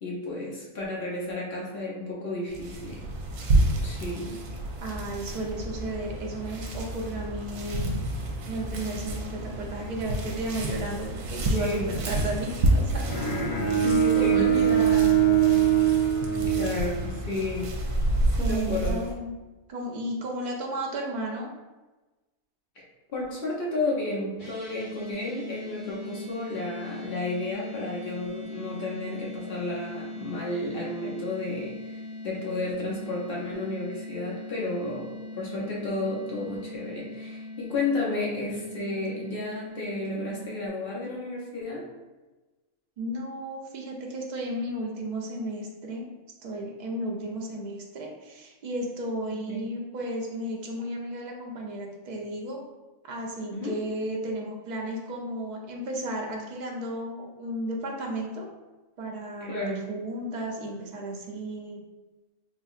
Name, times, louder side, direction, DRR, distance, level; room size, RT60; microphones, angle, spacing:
voice 1, 0.0-3.0 3.8-4.3 11.5-11.9 13.8-14.5 16.5-17.7 18.4-19.0 22.8-22.9 23.1-41.9 49.5-49.6 53.5-53.8 59.4-59.8, left 2 dB, 55° left, -5 dB, 0.8 m, -32 dB
sound 1, 2.5-19.1, right 1 dB, 80° right, 1.0 m, -29 dB
voice 2, 4.8-13.1 14.2-15.7 18.4-19.3 19.7-21.5 43.0-46.0 46.4-52.6 53.0-58.5 59.0-61.8, right 1 dB, 60° right, -1 dB, 0.4 m, -34 dB
Bowed string instrument, 13.0-17.3, right 9 dB, 90° left, 1.2 m, -23 dB
sound 2, 24.4-40.7, left 2 dB, 15° left, 1.4 m, -40 dB
3.8 x 2.7 x 2.4 m, 1.2 s
omnidirectional pair, 1.4 m